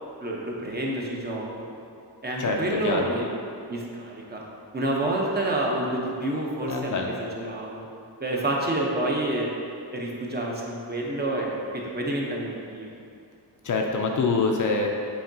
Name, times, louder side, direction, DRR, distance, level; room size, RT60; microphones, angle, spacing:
voice 1, 0.2-1.7 2.2-3.3 3.7-4.4 4.7-7.9 8.2-9.5 9.9-13.0, right 1 dB, 25° right, -3 dB, 0.6 m, -28 dB
voice 2, 6.7-7.2 13.6-14.9, left 4 dB, 50° left, 1 dB, 0.5 m, -25 dB
6.9 x 2.8 x 2.6 m, 2.5 s
cardioid pair, 95°, 42 cm